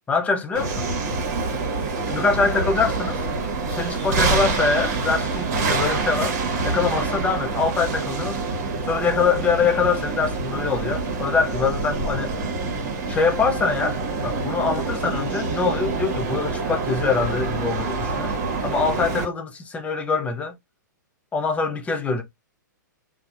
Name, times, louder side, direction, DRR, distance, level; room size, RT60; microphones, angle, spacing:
voice 1, 0.1-0.9 2.1-3.2 3.7-6.4 6.6-8.4 8.9-12.3 13.1-14.0 14.2-18.4 18.6-20.5 21.3-22.2, left 5 dB, 15° left, 0.5 m, -24 dB
sound 1, 0.5-19.2, right 3 dB, 55° right, 1.0 m, -26 dB
2.7 x 2.1 x 2.4 m
hypercardioid pair, 120°, 10 cm